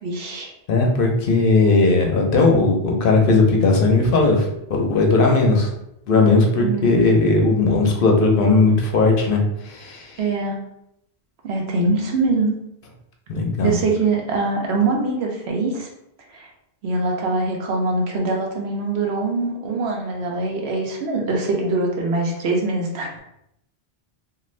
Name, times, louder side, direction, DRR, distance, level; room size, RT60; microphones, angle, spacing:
voice 1, 0.0-0.5 6.6-7.1 10.2-10.6 11.4-12.6 13.6-15.9 16.3-16.5 16.8-23.2, right 3 dB, 85° right, 0 dB, 1.0 m, -23 dB
voice 2, 0.7-5.7 6.1-9.4 9.6-10.1 13.3-13.7, left 3 dB, 65° left, 1 dB, 0.7 m, -17 dB
2.5 x 2.5 x 3.1 m, 0.81 s
omnidirectional pair, 1.1 m